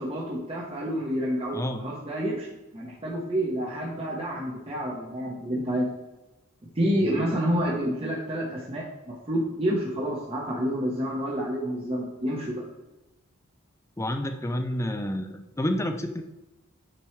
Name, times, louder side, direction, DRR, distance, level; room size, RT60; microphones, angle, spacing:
voice 1, 0.0-2.5 2.7-5.9 6.7-12.6, equal, 25° right, -4 dB, 0.9 m, -29 dB
voice 2, 7.0-7.4 14.0-16.2, left 1 dB, 15° left, 7 dB, 0.4 m, -30 dB
8.8 x 4.5 x 3.1 m, 1.0 s
head